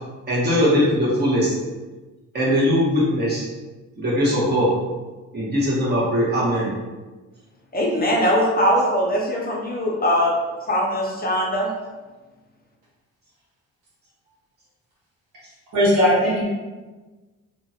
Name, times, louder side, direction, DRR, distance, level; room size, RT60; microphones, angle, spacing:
voice 1, 0.3-1.5 2.3-3.4 4.0-4.7 5.3-6.7, equal, 35° right, -6 dB, 1.3 m, -20 dB
voice 2, 7.7-10.3 10.7-11.7, equal, 30° left, -3 dB, 0.7 m, -21 dB
voice 3, 15.7-16.4, equal, 85° right, -7 dB, 1.4 m, -18 dB
2.8 x 2.5 x 2.8 m, 1.2 s
cardioid pair, 90°, 30 cm